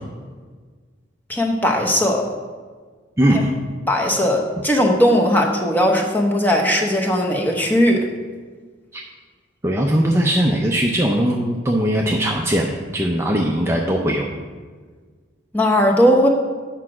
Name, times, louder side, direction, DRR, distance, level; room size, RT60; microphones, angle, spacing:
voice 1, 1.3-2.3 3.9-8.1 15.5-16.3, equal, 10° left, 0 dB, 0.8 m, -18 dB
voice 2, 3.2-3.5 8.9-9.0 9.6-14.2, right 1 dB, 15° right, -1 dB, 0.5 m, -19 dB
8.1 x 4.8 x 6.1 m, 1.5 s
head